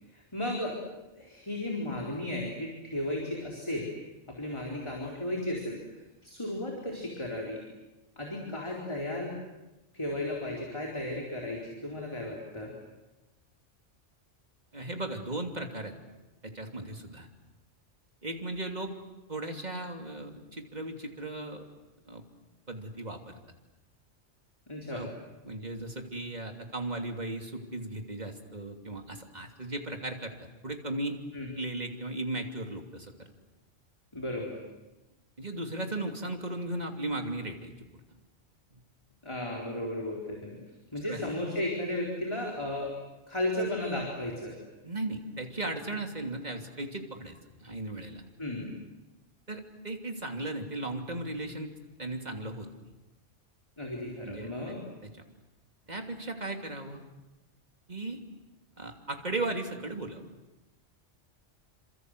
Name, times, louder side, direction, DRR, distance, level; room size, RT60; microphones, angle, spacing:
voice 1, 0.1-0.8 1.1-3.9 4.3-5.8 6.2-7.6 8.2-9.3 9.9-12.7 24.7-25.1 31.3-31.5 34.1-34.6 39.2-40.6 40.9-42.9 43.3-44.5 48.4-48.8 53.8-54.8, left 1 dB, 25° left, -1 dB, 4.3 m, -34 dB
voice 2, 14.7-15.9 16.4-17.3 18.2-18.9 19.3-21.6 22.1-22.2 22.7-23.3 24.9-25.1 25.4-31.2 31.6-33.3 35.4-37.7 38.7-38.8 41.1-41.2 44.8-48.2 49.5-51.7 52.0-52.7 54.2-54.8 55.9-57.0 57.9-58.2 58.8-60.2, right 2 dB, 40° right, 4 dB, 3.0 m, -36 dB
28.5 x 26.5 x 8.0 m, 1.0 s
omnidirectional pair, 1.2 m